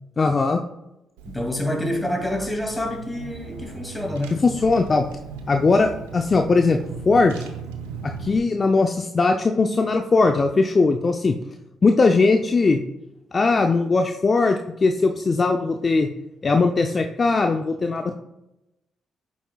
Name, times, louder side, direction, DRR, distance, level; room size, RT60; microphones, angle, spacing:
voice 1, 0.2-0.6 4.4-5.0 5.5-6.8 7.1-7.4 8.0-11.3 11.8-12.8 13.3-16.1 16.4-18.2, left 3 dB, 40° left, 5 dB, 0.5 m, -19 dB
voice 2, 1.2-4.4, left 1 dB, 10° left, 2 dB, 2.4 m, -27 dB
Car / Engine, 1.2-8.4, right 5 dB, 85° right, 0.7 m, -38 dB
9.1 x 7.0 x 2.3 m, 0.92 s
hypercardioid pair, 45°, 0 cm